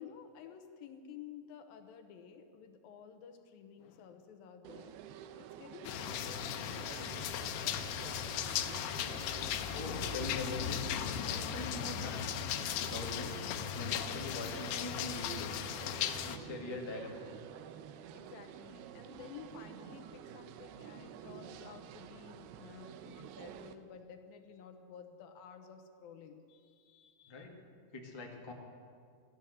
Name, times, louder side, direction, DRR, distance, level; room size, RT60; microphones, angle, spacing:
voice 1, 0.0-8.4 18.1-27.5, left 7 dB, 70° left, 7 dB, 2.5 m, -53 dB
sound 1, 4.6-23.7, right 10 dB, 85° right, 2.6 m, -50 dB
sound 2, 5.8-16.4, left 9 dB, 90° left, 2.8 m, -37 dB
voice 2, 9.7-10.8 11.2-12.3 12.8-13.4 13.7-15.7 16.3-17.2 27.3-27.5 27.9-28.5, left 2 dB, 35° left, -1 dB, 0.4 m, -42 dB
15.0 x 12.0 x 8.0 m, 2.2 s
omnidirectional pair, 4.6 m